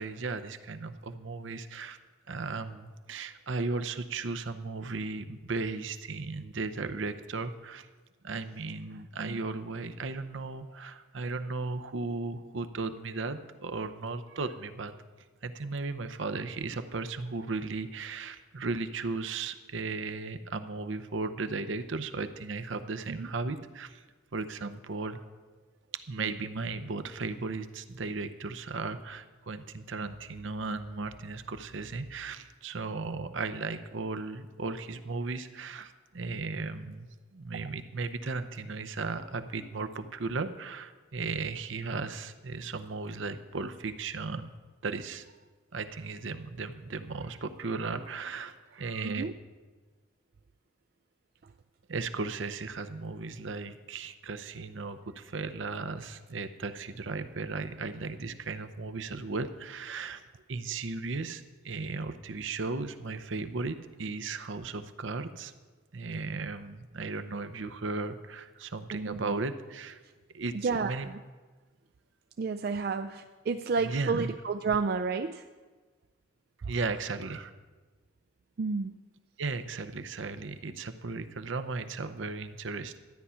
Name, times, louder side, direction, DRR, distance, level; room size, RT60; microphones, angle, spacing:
voice 1, 0.0-2.0 2.3-7.9 8.2-14.9 15.4-24.0 24.3-25.2 26.1-44.5 44.8-45.3 45.7-49.2 51.9-60.2 60.5-65.5 65.9-70.0 70.3-71.1 73.8-74.3 76.7-77.5 79.4-83.0, right 3 dB, 70° right, 9 dB, 0.7 m, -36 dB
voice 2, 68.9-69.3 70.5-71.2 72.4-75.4 76.6-76.7 78.6-79.0, right 4 dB, 50° right, 7 dB, 0.4 m, -31 dB
12.5 x 9.6 x 5.7 m, 1.3 s
head